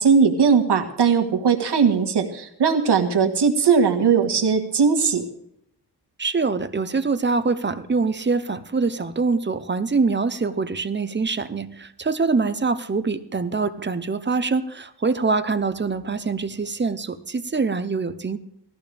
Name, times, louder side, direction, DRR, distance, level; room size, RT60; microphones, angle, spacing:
voice 1, 0.0-5.2, right 6 dB, 75° right, 3 dB, 1.8 m, -19 dB
voice 2, 6.2-18.4, right 4 dB, 25° right, 11 dB, 0.8 m, -24 dB
18.5 x 14.0 x 3.5 m, 0.77 s
wide cardioid pair, 120°, 41 cm